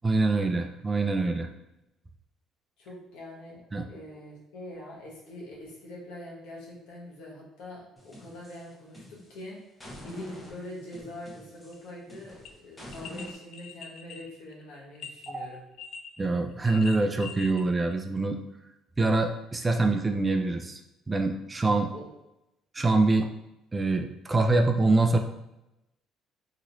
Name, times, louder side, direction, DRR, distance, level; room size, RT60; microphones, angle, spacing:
voice 1, 0.0-1.5 3.7-3.8 15.3-15.5 16.2-18.4 19.0-20.8 21.1-21.9 22.7-23.3 23.7-25.2, right 2 dB, 20° right, 5 dB, 0.3 m, -25 dB
voice 2, 2.8-9.6 10.0-15.6 21.9-22.0, left 1 dB, 85° left, -3 dB, 1.0 m, -44 dB
sound 1, 8.0-9.4 9.8-13.3, left 1 dB, 20° left, 0.8 m, -45 dB
sound 2, 11.7-11.9 12.5-12.6 12.9-15.3 15.8-16.3 16.5-17.6 17.9-18.0, left 6 dB, 70° left, 0.3 m, -43 dB
3.0 x 2.8 x 2.6 m, 0.90 s
cardioid pair, 105°, 0 cm